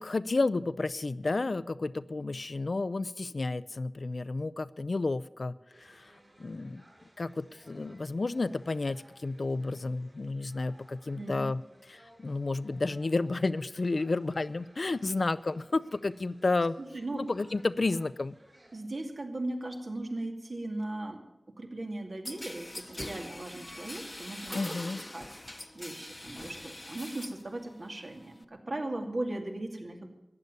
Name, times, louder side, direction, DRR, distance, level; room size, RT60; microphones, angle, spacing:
voice 1, 0.0-6.1 6.4-6.8 7.2-11.6 11.9-16.8 17.2-18.4 24.5-25.0, left 3 dB, 75° left, 14 dB, 0.4 m, -31 dB
sound 1, 5.7-18.8, right 1 dB, 50° right, 6.3 m, -60 dB
voice 2, 11.1-11.5 16.9-17.3 18.7-21.2 21.6-24.7 25.1-25.3 25.7-30.1, right 2 dB, 65° right, 3 dB, 2.4 m, -37 dB
sound 2, 22.2-27.5 27.8-28.4, left 1 dB, 30° left, 0.8 m, -43 dB
14.5 x 9.7 x 9.5 m, 0.99 s
wide cardioid pair, 65°, 0 cm